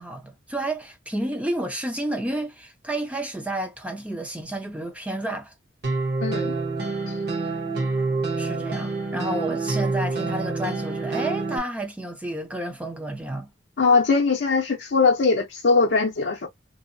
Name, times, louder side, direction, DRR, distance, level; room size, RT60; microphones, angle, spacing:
voice 1, 0.0-5.5 7.4-7.5 8.4-13.5, right 1 dB, 5° right, 0.4 m, -31 dB
sound 1, 5.8-11.6, right 3 dB, 50° right, 1.0 m, -27 dB
voice 2, 6.2-6.5 13.8-16.5, left 4 dB, 65° left, 0.5 m, -20 dB
2.6 x 2.0 x 2.6 m
head